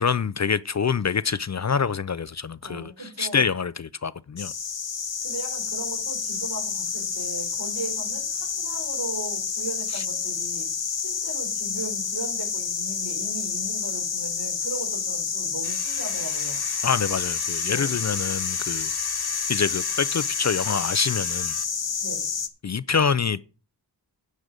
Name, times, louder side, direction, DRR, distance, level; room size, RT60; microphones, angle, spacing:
voice 1, 0.0-4.5 9.9-10.0 16.8-18.9 19.5-21.5 22.6-23.4, left 6 dB, 40° left, 0.4 m, -26 dB
voice 2, 2.6-3.4 5.2-10.7 11.0-16.6 17.6-17.9 22.0-22.3, right 3 dB, 75° right, 4.9 m, -37 dB
sound 1, 4.4-22.5, left 6 dB, 80° left, 1.1 m, -29 dB
Domestic sounds home sounds, 15.6-21.6, left 4 dB, 60° left, 1.9 m, -38 dB
9.8 x 5.2 x 7.9 m
wide cardioid pair, 65°, 42 cm